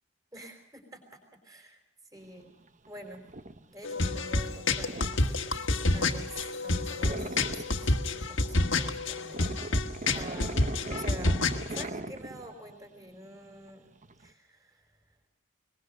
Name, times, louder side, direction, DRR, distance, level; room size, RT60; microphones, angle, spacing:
voice 1, 0.3-1.8 2.1-2.5 2.9-3.2 3.7-5.0 5.2-5.6 5.9-9.4 10.1-11.4 11.7-13.9 14.2-14.9, right 1 dB, 15° right, 5 dB, 4.7 m, -47 dB
sound 1, 2.2-14.3, right 2 dB, 35° right, 1.0 m, -41 dB
sound 2, 3.8-11.8, left 2 dB, 55° left, 1.7 m, -28 dB
22.5 x 21.0 x 6.6 m, 0.76 s
head